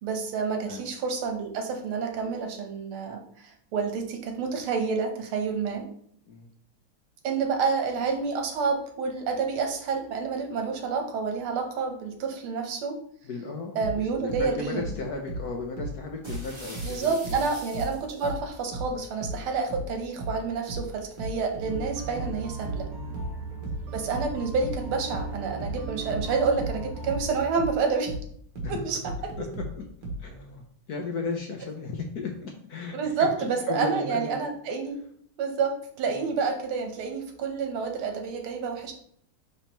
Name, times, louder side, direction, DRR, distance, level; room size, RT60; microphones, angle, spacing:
voice 1, 0.0-5.9 7.2-13.0 13.8-14.8 16.8-22.9 23.9-28.1 28.7-29.3 32.9-35.0 35.4-38.9, right 5 dB, 85° right, 4 dB, 1.9 m, -29 dB
voice 2, 13.2-17.4 18.9-19.1 23.0-23.8 28.6-28.8 29.4-29.5 30.2-34.4 36.1-36.3, left 3 dB, 65° left, 2 dB, 1.0 m, -36 dB
sound 1, 13.8-17.0 17.2-30.3, right 1 dB, 65° right, 2.0 m, -35 dB
sound 2, 16.2-18.4, right 1 dB, 15° right, 1.2 m, -44 dB
sound 3, 21.6-27.4, right 4 dB, 45° right, 1.7 m, -37 dB
9.6 x 3.4 x 3.0 m, 0.63 s
omnidirectional pair, 2.3 m